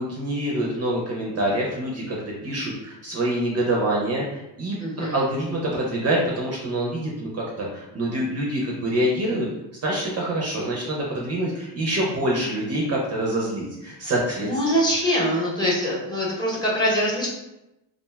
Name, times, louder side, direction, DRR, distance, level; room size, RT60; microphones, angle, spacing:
voice 1, 0.0-2.2 2.4-9.5 9.8-14.5, right 1 dB, 35° right, -3 dB, 0.5 m, -26 dB
voice 2, 4.8-5.2 14.4-17.3, equal, 10° left, -5 dB, 0.7 m, -23 dB
3.2 x 2.4 x 2.2 m, 0.92 s
cardioid pair, 130°, 44 cm